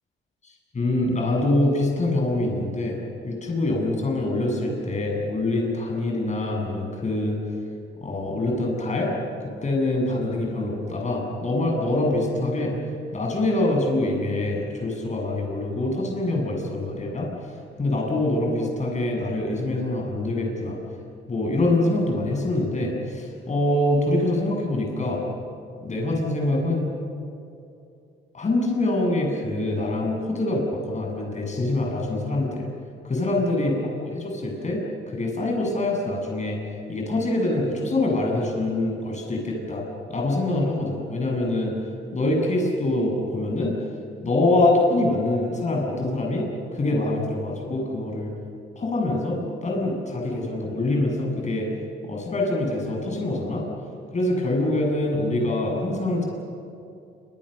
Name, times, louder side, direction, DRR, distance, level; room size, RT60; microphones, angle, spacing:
voice 1, 0.4-3.0 3.2-7.4 8.0-9.1 9.4-12.8 13.1-17.3 17.8-20.8 21.3-25.2 25.8-26.9 28.3-32.7 33.0-33.7 34.0-34.8 35.1-36.6 36.9-41.7 42.1-43.8 44.2-46.4 46.7-48.3 48.7-51.7 52.0-53.6 54.1-56.2, left 2 dB, 35° left, 0 dB, 7.9 m, -25 dB
28.5 x 25.5 x 6.8 m, 2.7 s
cardioid pair, 90°, 20 cm